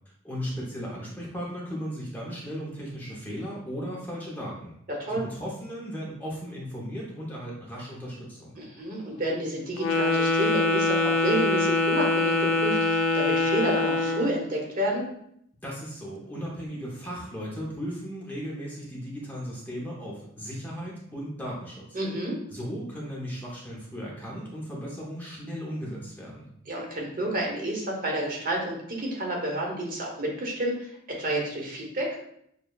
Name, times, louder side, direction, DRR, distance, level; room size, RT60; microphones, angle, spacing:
voice 1, 0.2-4.8 5.1-8.6 15.6-22.0 22.5-26.5, equal, 10° left, -5 dB, 0.7 m, -36 dB
voice 2, 4.9-5.2 8.6-15.1 21.9-22.4 26.7-32.1, right 1 dB, 45° right, -1 dB, 0.9 m, -30 dB
Wind instrument woodwind instrument, 9.8-14.4, left 2 dB, 75° left, 0.4 m, -24 dB
6.5 x 2.2 x 2.3 m, 0.73 s
head